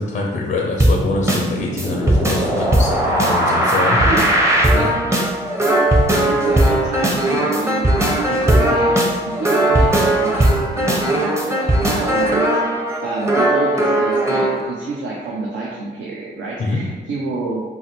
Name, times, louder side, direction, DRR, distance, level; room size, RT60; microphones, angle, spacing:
voice 1, 0.0-4.0 4.7-5.0 16.6-16.8, left 3 dB, 50° left, 0 dB, 0.5 m, -24 dB
sound 1, 0.8-14.6, right 1 dB, 15° right, 0.6 m, -18 dB
voice 2, 4.7-5.2 6.2-17.6, right 3 dB, 75° right, -4 dB, 0.6 m, -28 dB
3.8 x 2.0 x 2.9 m, 1.4 s
cardioid pair, 70°, 19 cm